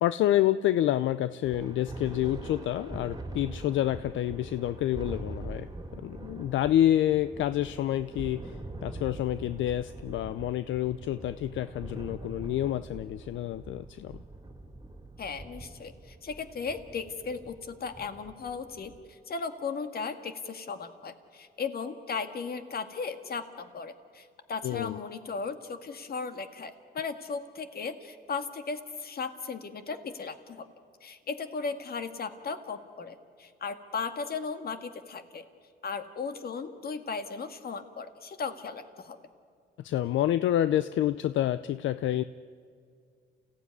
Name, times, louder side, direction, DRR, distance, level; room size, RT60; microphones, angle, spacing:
voice 1, 0.0-14.2 24.6-25.0 39.8-42.2, left 12 dB, 75° left, 14 dB, 0.5 m, -28 dB
Thunder, 1.4-19.1, right 2 dB, 20° right, 2.6 m, -43 dB
voice 2, 15.2-30.7 31.0-35.4 35.8-39.2, left 5 dB, 50° left, 8 dB, 1.9 m, -36 dB
29.0 x 15.5 x 9.6 m, 2.2 s
cardioid pair, 90°, 20 cm